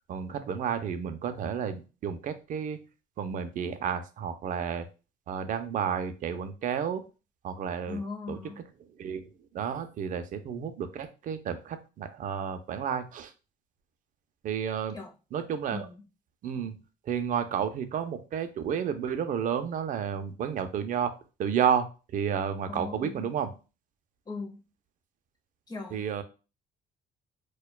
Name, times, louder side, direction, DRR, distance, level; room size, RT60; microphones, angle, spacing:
voice 1, 0.1-2.8 3.2-4.9 5.3-7.0 7.4-8.0 8.3-8.4 9.0-9.2 9.5-13.3 14.4-15.0 15.3-15.9 16.4-16.7 17.1-23.5 25.9-26.2, right 8 dB, 50° right, 10 dB, 0.5 m, -31 dB
voice 2, 7.9-8.6 14.9-15.1 15.7-16.0 22.7-23.3 24.3-24.6 25.7-26.2, left 3 dB, 25° left, 1 dB, 0.8 m, -39 dB
4.3 x 2.3 x 2.2 m, 0.32 s
cardioid pair, 110°, 17 cm